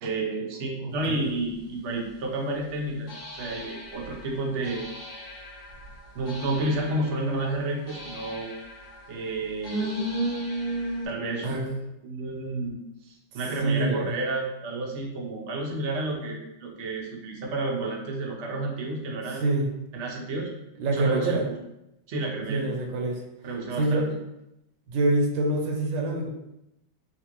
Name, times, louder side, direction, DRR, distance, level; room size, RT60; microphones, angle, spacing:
voice 1, 0.0-4.9 6.1-8.5 9.1-10.1 11.0-12.8 13.0-19.4 19.9-20.5 20.9-21.5 22.1-22.7 23.4-24.0, right 2 dB, 65° right, -1 dB, 0.7 m, -31 dB
voice 2, 0.7-1.3 11.4-11.6 13.6-14.1 19.3-19.7 20.8-21.4 22.5-23.2 23.8-24.2 24.9-26.3, right 2 dB, 85° right, 0 dB, 1.4 m, -26 dB
sound 1, 1.5-1.6 3.1-11.1, right 1 dB, 80° left, 1.6 m, -35 dB
4.1 x 2.4 x 2.9 m, 0.88 s
omnidirectional pair, 2.0 m